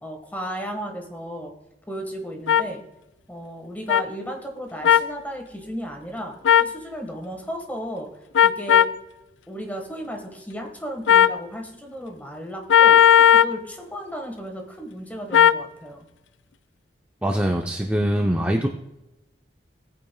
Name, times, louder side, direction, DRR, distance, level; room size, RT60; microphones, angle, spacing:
voice 1, 0.0-1.5 1.9-2.8 3.3-8.1 8.4-8.9 9.5-16.1, equal, 10° left, 3 dB, 1.4 m, -34 dB
sound 1, 2.5-2.6 3.9-4.0 4.8-5.1 6.4-6.7 8.3-9.0 11.1-11.4 12.7-13.6 15.3-15.6, left 10 dB, 80° left, 0.4 m, -15 dB
voice 2, 17.2-18.7, equal, 10° right, 1 dB, 0.5 m, -23 dB
18.0 x 8.6 x 2.2 m, 0.96 s
head